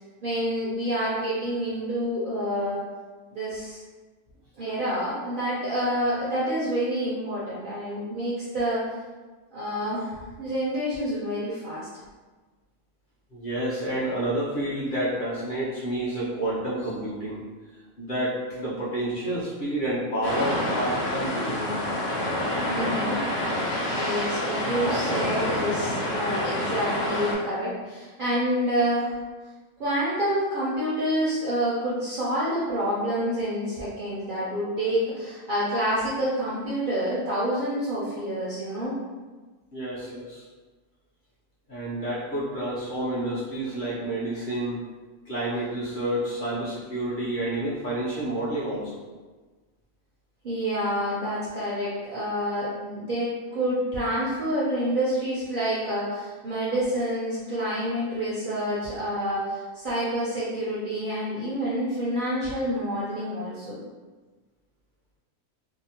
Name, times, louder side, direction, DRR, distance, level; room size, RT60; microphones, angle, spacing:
voice 1, 0.2-2.8 3.3-3.8 4.6-8.8 9.5-11.9 22.7-23.2 23.9-29.2 29.8-38.9 50.4-63.8, equal, 60° right, -8 dB, 0.5 m, -28 dB
voice 2, 13.3-17.4 18.0-21.9 26.5-26.6 39.7-40.4 41.7-44.8 45.3-48.9, right 1 dB, 50° left, -9 dB, 0.6 m, -29 dB
sound 1, 20.2-27.3, left 1 dB, 65° left, 1.0 m, -27 dB
2.7 x 2.0 x 2.8 m, 1.3 s
omnidirectional pair, 1.4 m